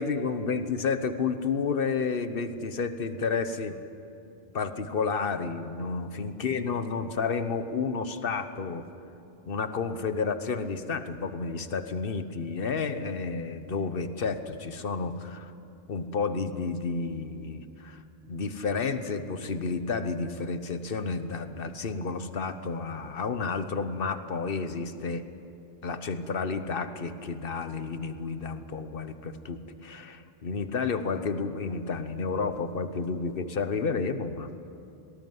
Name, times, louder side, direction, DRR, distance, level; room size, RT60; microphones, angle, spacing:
voice 1, 0.0-3.7 4.5-8.9 9.5-15.5 15.9-18.0 18.3-25.3 25.8-34.5, left 4 dB, 55° left, 10 dB, 1.2 m, -31 dB
19.5 x 18.5 x 9.6 m, 2.7 s
omnidirectional pair, 1.2 m